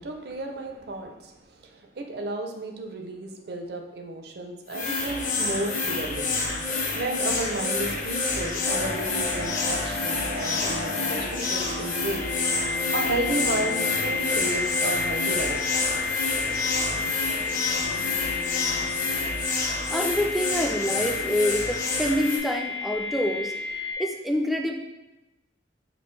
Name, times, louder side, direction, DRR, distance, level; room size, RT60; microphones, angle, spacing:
voice 1, 0.0-6.3 6.7-12.2 12.7-15.6, right 2 dB, 60° right, 3 dB, 0.5 m, -33 dB
sound 1, 4.7-22.4, left 3 dB, 50° left, 0.7 m, -28 dB
sound 2, 8.6-23.9, left 4 dB, 90° left, 0.7 m, -32 dB
voice 2, 19.9-23.5 24.0-24.8, equal, ahead, 2 dB, 0.3 m, -26 dB
5.2 x 2.4 x 3.1 m, 1.0 s
head